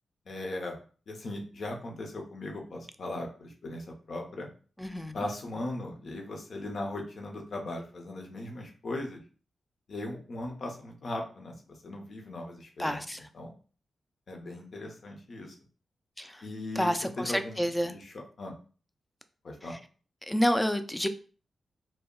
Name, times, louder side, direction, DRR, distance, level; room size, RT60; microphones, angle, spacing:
voice 1, 0.3-0.8 1.1-4.5 5.1-9.2 9.9-11.5 11.8-13.0 13.3-13.5 14.3-15.5 16.4-18.5 19.4-19.7, left 2 dB, 65° left, 1 dB, 0.7 m, -38 dB
voice 2, 4.8-5.2 12.8-13.2 16.2-16.3 16.8-17.9 20.3-21.1, equal, 10° left, 9 dB, 0.3 m, -29 dB
2.2 x 2.0 x 3.6 m, 0.39 s
cardioid pair, 65°, 0 cm